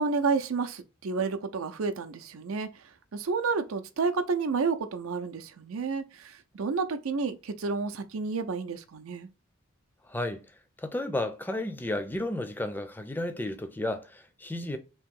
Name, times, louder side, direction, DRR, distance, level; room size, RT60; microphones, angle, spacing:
voice 1, 0.0-2.7 3.1-9.3, right 4 dB, 85° right, 0.5 m, -30 dB
voice 2, 10.1-10.4 10.8-14.8, left 1 dB, 10° left, 0.4 m, -32 dB
3.0 x 2.7 x 3.6 m
head